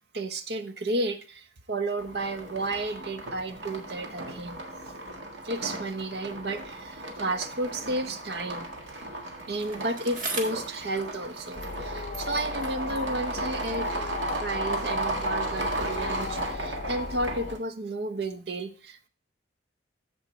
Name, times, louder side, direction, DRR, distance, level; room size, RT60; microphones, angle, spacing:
voice 1, 0.1-4.6 5.4-8.7 9.5-14.1 14.4-19.1, right 2 dB, 60° right, 9 dB, 0.9 m, -32 dB
sound 1, 2.0-17.6, right 2 dB, 80° right, 1.7 m, -35 dB
Bicycle, 9.5-11.9 12.1-14.5 15.3-15.4, right 3 dB, 45° right, 1.7 m, -41 dB
sound 2, 11.5-17.6, left 3 dB, 50° left, 0.7 m, -37 dB
14.0 x 4.9 x 3.2 m, 0.35 s
head